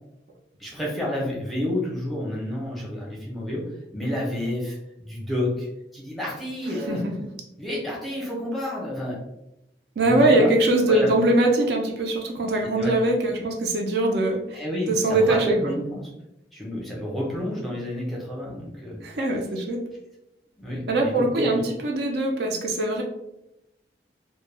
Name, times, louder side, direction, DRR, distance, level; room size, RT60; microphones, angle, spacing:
voice 1, 0.6-3.6 3.9-7.0 7.6-9.2 10.0-10.5 10.9-11.3 12.6-12.9 14.5-16.1 16.5-19.2 20.6-21.6, left 1 dB, ahead, -4 dB, 0.6 m, -30 dB
voice 2, 10.0-14.6 14.9-15.7 19.0-19.8 20.9-23.0, right 2 dB, 65° right, 1 dB, 0.4 m, -22 dB
2.2 x 2.1 x 3.2 m, 0.87 s
head